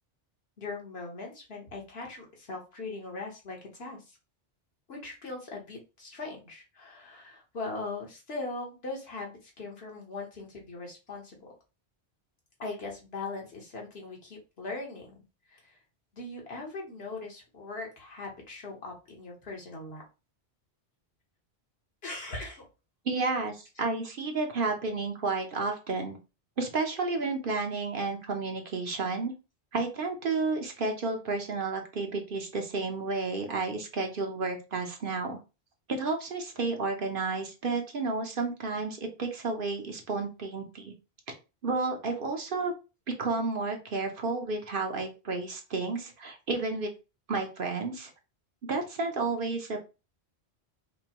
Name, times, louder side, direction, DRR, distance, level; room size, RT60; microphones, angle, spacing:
voice 1, 0.6-4.2 4.9-11.5 12.6-15.2 15.5-15.8 16.1-20.0 22.0-22.7, left 3 dB, 70° left, 0 dB, 1.4 m, -40 dB
voice 2, 23.0-26.2 26.6-29.3 29.7-35.4 35.9-40.9 41.3-41.4 41.6-42.7 43.2-46.9 47.3-48.1 48.6-49.8, right 3 dB, 60° right, 3 dB, 1.0 m, -31 dB
5.1 x 2.2 x 2.9 m, 0.30 s
omnidirectional pair, 1.1 m